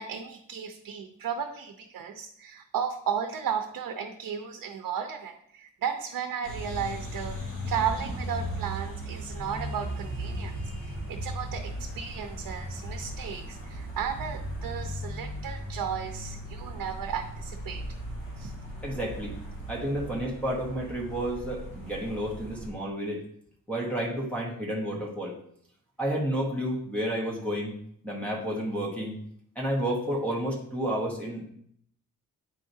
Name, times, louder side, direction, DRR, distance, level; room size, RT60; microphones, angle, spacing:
voice 1, 0.0-7.4 7.7-17.8 18.4-18.6, right 7 dB, 90° right, 5 dB, 0.7 m, -34 dB
sound 1, 6.4-22.7, right 1 dB, 40° left, 2.1 m, -37 dB
voice 2, 18.8-19.3 19.7-23.2 23.7-25.4 26.0-27.8 28.0-29.2 29.5-31.4, equal, 5° left, -5 dB, 1.1 m, -31 dB
9.1 x 4.7 x 2.7 m, 0.67 s
wide cardioid pair, 175°, 33 cm